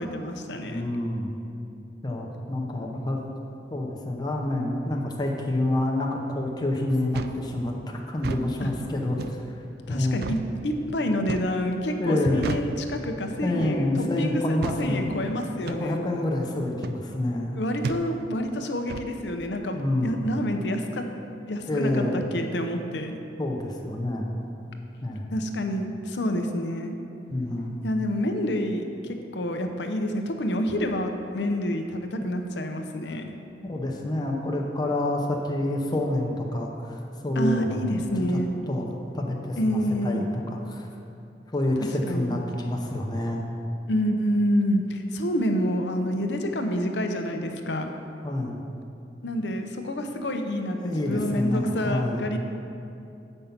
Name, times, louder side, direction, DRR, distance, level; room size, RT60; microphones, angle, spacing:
voice 1, 0.0-0.9 8.6-8.7 9.9-13.9 14.2-16.0 17.5-21.1 21.5-23.2 25.3-26.9 27.8-33.3 37.4-38.5 39.6-40.3 42.1-42.4 43.9-47.9 49.2-52.4, equal, 80° left, 5 dB, 0.7 m, -28 dB
voice 2, 0.5-1.3 2.0-3.2 3.7-9.6 9.9-10.2 12.0-12.4 13.4-15.1 15.7-17.6 19.7-20.3 21.7-22.2 23.4-24.3 25.0-25.4 27.3-27.8 33.7-38.0 38.3-38.4 38.7-40.9 41.5-43.4 48.2-48.6 50.7-52.2, left 1 dB, 25° left, 0 dB, 0.7 m, -28 dB
sound 1, 7.1-7.4 8.1-8.5 9.2-9.4 10.2-10.5 11.3-11.6 12.4-12.7 13.6-13.8 14.6-14.8 15.7-15.8 16.8-17.0 17.8-18.1 18.9-19.1, right 4 dB, 60° right, 0.3 m, -32 dB
8.0 x 5.4 x 5.8 m, 2.8 s
head